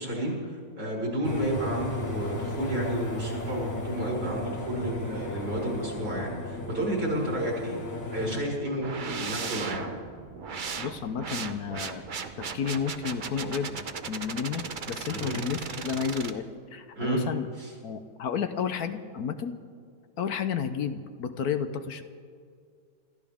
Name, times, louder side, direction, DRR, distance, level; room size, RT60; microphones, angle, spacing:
voice 1, 0.0-7.8 8.1-9.9 15.1-15.4 17.0-17.2 17.6-17.7, right 1 dB, 75° right, -3 dB, 5.6 m, -31 dB
sound 1, 1.2-8.4, left 1 dB, 40° left, 2.6 m, -35 dB
sound 2, 8.8-16.3, right 5 dB, 50° right, 0.6 m, -37 dB
voice 2, 10.8-12.1 12.4-17.5 17.8-19.6 20.2-22.0, left 7 dB, 65° left, 9 dB, 1.2 m, -32 dB
27.5 x 14.5 x 3.6 m, 2.2 s
omnidirectional pair, 1.9 m